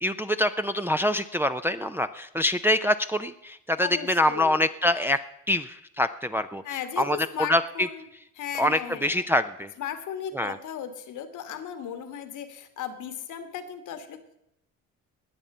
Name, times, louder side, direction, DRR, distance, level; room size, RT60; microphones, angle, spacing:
voice 1, 0.0-5.2 5.5-6.6 7.0-7.2 7.5-7.9 8.6-9.7 10.3-10.6, left 1 dB, 5° right, 7 dB, 0.5 m, -25 dB
voice 2, 3.8-4.6 6.6-8.0 8.3-9.3 9.8-14.4, left 9 dB, 80° left, 9 dB, 1.7 m, -36 dB
20.0 x 7.3 x 5.5 m, 0.79 s
cardioid pair, 90°, 30 cm